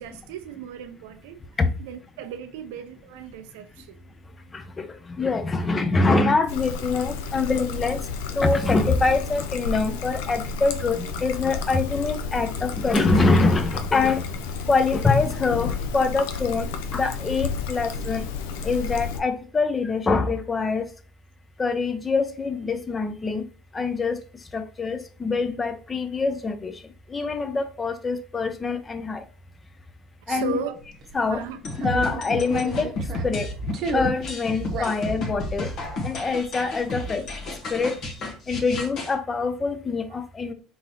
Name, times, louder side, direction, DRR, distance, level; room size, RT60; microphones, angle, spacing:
voice 1, 0.0-1.4 1.8-4.0 30.3-30.8 31.3-31.6 34.8-34.9, right 8 dB, 75° right, 0.4 m, -36 dB
voice 2, 4.5-4.9 5.2-8.0 8.4-14.3 14.7-18.2 18.6-20.8 21.6-23.4 23.7-24.2 24.5-26.7 27.1-29.2 30.3-30.5 31.1-31.5 31.8-32.9 33.2-33.5 33.9-35.7 36.0-37.3 37.7-38.0 38.5-40.5, left 3 dB, 25° left, 0.8 m, -24 dB
Trickle dribble, 6.5-19.2, left 5 dB, 75° left, 0.6 m, -31 dB
sound 1, 30.8-31.2 31.7-33.4 33.7-34.3 34.6-36.9 37.2-37.8, right 3 dB, 50° right, 0.8 m, -34 dB
sound 2, 31.6-39.1, left 1 dB, 50° left, 1.3 m, -32 dB
3.9 x 3.8 x 3.0 m
hypercardioid pair, 80°, 0 cm